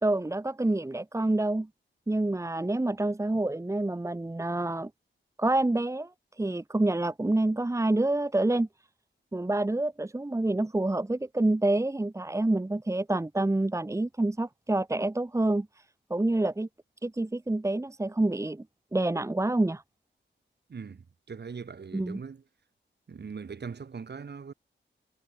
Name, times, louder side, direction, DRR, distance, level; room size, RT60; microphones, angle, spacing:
voice 1, 0.0-1.7 2.1-4.9 5.4-6.1 6.4-8.7 9.3-15.7 16.1-16.7 17.0-18.6 18.9-19.8 21.9-22.2, right 2 dB, 15° right, 1.4 m, -27 dB
voice 2, 20.7-22.4 23.1-24.5, right 5 dB, 55° right, 7.2 m, -41 dB
wide cardioid pair, 150°, 20 cm